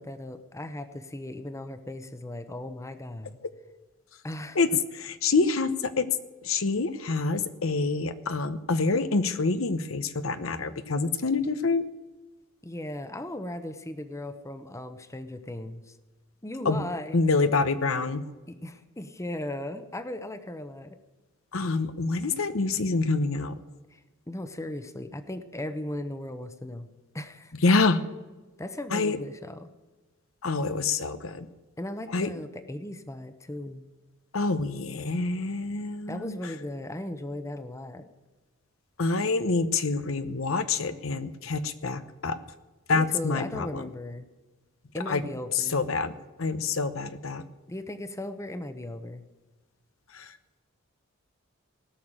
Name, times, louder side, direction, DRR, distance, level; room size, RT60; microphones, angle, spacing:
voice 1, 0.0-3.4 4.2-4.6 12.6-16.0 16.4-17.2 18.5-21.0 23.9-24.0 24.3-26.9 27.1-27.5 28.6-29.7 31.8-33.8 36.1-38.1 42.9-44.3 44.9-45.8 47.7-49.2, left 1 dB, 15° left, 10 dB, 0.9 m, -37 dB
voice 2, 5.2-6.1 6.4-11.8 16.6-16.8 17.1-18.2 21.5-23.5 27.6-28.0 28.9-29.2 30.4-31.5 32.1-32.3 34.3-36.3 39.0-42.4 42.9-43.8 45.1-45.2 45.5-46.1 46.4-47.4 50.1-50.3, left 3 dB, 75° left, 11 dB, 0.9 m, -26 dB
17.5 x 6.6 x 8.9 m, 1.2 s
head